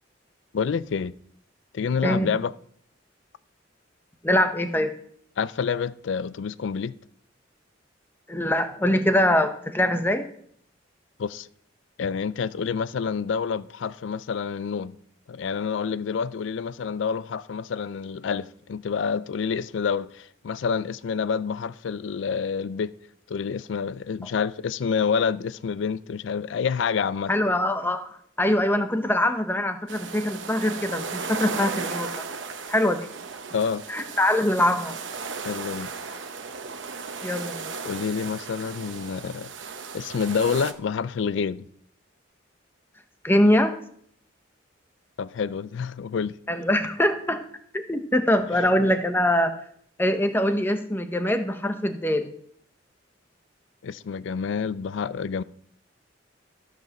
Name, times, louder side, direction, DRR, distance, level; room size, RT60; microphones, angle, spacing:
voice 1, 0.5-1.1 1.7-2.5 5.4-6.9 11.2-11.5 12.0-15.0 15.3-22.9 23.3-27.3 33.5-33.8 35.4-35.9 37.8-39.5 39.9-41.7 45.2-46.3 53.8-55.4, left 6 dB, 65° left, 0.4 m, -28 dB
voice 2, 4.2-4.9 8.3-10.3 27.3-28.0 28.4-32.2 32.7-33.0 33.9-34.9 37.2-37.7 43.2-43.7 46.5-47.4 47.7-49.5 50.0-52.3, left 1 dB, 10° left, 0.8 m, -23 dB
sound 1, 29.9-40.7, right 5 dB, 70° right, 0.9 m, -35 dB
13.5 x 5.0 x 6.4 m
head